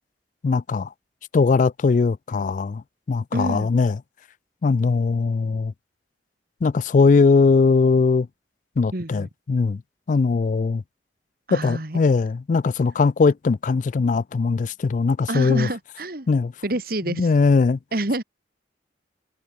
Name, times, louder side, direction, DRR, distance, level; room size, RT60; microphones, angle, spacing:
voice 1, 0.4-0.9 1.3-4.0 4.6-5.7 6.6-8.3 8.8-9.8 10.1-10.8 11.5-15.7 16.3-16.5 17.1-17.8, left 4 dB, 45° left, 0.3 m, -20 dB
voice 2, 3.3-3.7 8.9-9.3 11.5-12.0 15.3-16.3 16.6-17.3 17.9-18.2, right 1 dB, 55° right, 2.2 m, -27 dB
head